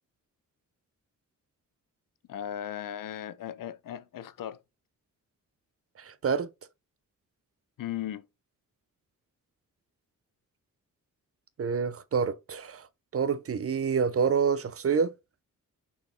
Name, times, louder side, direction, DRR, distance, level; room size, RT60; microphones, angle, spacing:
voice 1, 2.3-4.6 7.8-8.2, left 11 dB, 75° left, 0.6 m, -37 dB
voice 2, 6.0-6.5 11.6-12.8 13.1-15.1, right 6 dB, 45° right, 0.6 m, -27 dB
6.1 x 4.1 x 3.8 m
cardioid pair, 100°, 33 cm